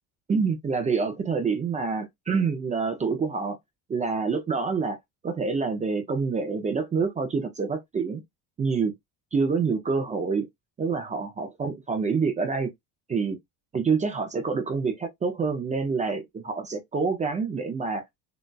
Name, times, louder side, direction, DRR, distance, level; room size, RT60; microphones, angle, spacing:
voice 1, 0.3-3.6 3.9-5.0 5.2-8.2 8.6-8.9 9.3-10.5 10.8-12.7 13.1-13.4 13.7-18.0, right 5 dB, 20° right, 0.4 m, -27 dB
3.9 x 2.2 x 2.2 m
cardioid pair, 150°, 41 cm